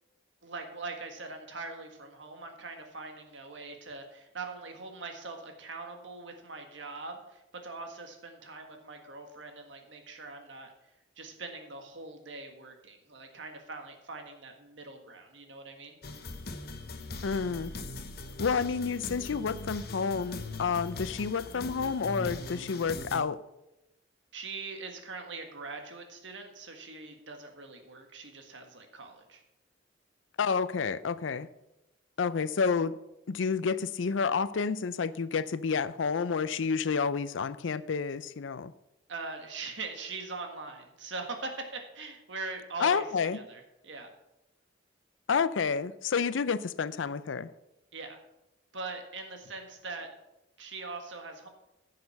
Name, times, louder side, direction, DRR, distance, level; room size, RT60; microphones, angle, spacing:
voice 1, 0.4-10.7 11.2-16.0 24.3-29.4 39.1-43.1 43.3-44.1 47.9-48.2 48.7-50.1 50.6-51.5, right 3 dB, 75° right, 4 dB, 1.6 m, -42 dB
sound 1, 16.0-23.2, left 2 dB, 55° left, 1.0 m, -40 dB
voice 2, 17.2-17.7 18.4-23.4 30.4-31.5 32.2-33.0 33.3-38.7 42.8-43.4 45.3-47.5, left 5 dB, 90° left, 16 dB, 0.5 m, -29 dB
10.5 x 6.7 x 5.7 m, 0.93 s
head